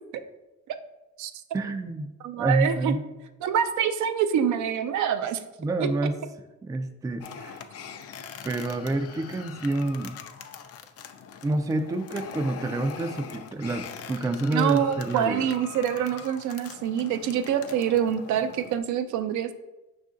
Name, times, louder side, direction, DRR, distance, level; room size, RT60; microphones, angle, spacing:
voice 1, 1.5-2.1 2.4-3.0 5.6-6.2 6.6-7.6 8.4-10.2 11.4-15.5, right 2 dB, 10° right, 8 dB, 0.3 m, -28 dB
voice 2, 2.2-2.9 3.4-5.4 5.8-5.9 14.5-19.5, right 9 dB, 70° right, 9 dB, 0.5 m, -26 dB
sound 1, 7.2-18.8, left 7 dB, 55° left, 0.5 m, -42 dB
5.5 x 2.5 x 3.7 m, 1.0 s
cardioid pair, 90°, 30 cm